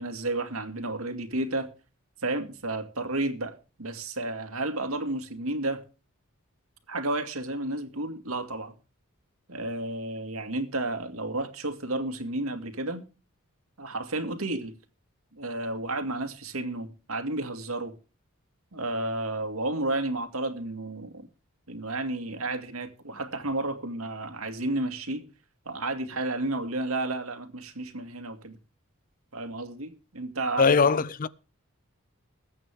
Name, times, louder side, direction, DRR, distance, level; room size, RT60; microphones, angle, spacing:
voice 1, 0.0-1.7 2.2-5.8 6.9-8.7 9.5-13.0 13.8-14.8 15.3-17.9 18.7-21.3 21.7-25.2 25.7-28.6 29.3-30.7, right 2 dB, 85° right, 2.3 m, -32 dB
voice 2, 30.6-31.3, left 5 dB, 40° left, 0.6 m, -21 dB
21.5 x 8.7 x 3.6 m
head